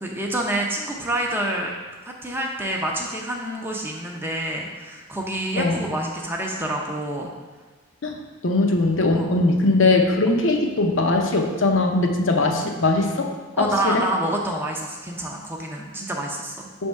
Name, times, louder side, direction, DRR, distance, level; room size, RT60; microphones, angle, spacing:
voice 1, 0.0-1.7 2.0-7.3 9.1-9.3 13.6-16.7, right 1 dB, 10° right, 0 dB, 0.5 m, -27 dB
voice 2, 8.4-13.3 13.6-14.0 16.8-16.9, left 2 dB, 70° left, 2 dB, 0.7 m, -20 dB
5.3 x 3.5 x 5.3 m, 1.3 s
head